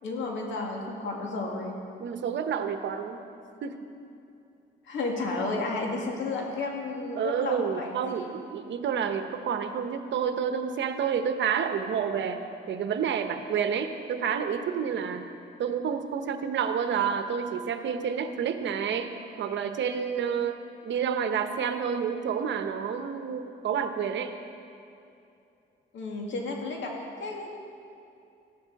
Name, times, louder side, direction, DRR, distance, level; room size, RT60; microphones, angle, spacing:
voice 1, 0.0-1.8 4.8-8.3 25.9-26.9 27.2-27.5, left 3 dB, 70° left, 0 dB, 2.4 m, -32 dB
voice 2, 2.0-3.2 3.6-3.8 7.1-12.4 12.7-15.3 15.6-24.4, right 7 dB, 65° right, 7 dB, 1.0 m, -29 dB
15.5 x 11.5 x 4.8 m, 2.6 s
cardioid pair, 90°, 20 cm